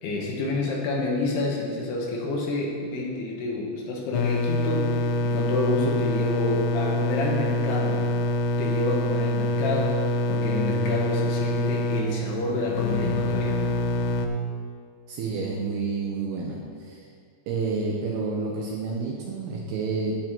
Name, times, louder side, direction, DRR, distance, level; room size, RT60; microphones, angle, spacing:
voice 1, 0.0-8.2 8.6-13.7, left 2 dB, 70° left, -2 dB, 2.9 m, -29 dB
sound 1, 4.1-14.3, left 2 dB, 85° left, 2.4 m, -25 dB
voice 2, 15.1-16.6 16.8-17.0 17.5-20.2, right 4 dB, 75° right, -1 dB, 2.5 m, -29 dB
10.5 x 8.3 x 4.5 m, 2.1 s
omnidirectional pair, 5.4 m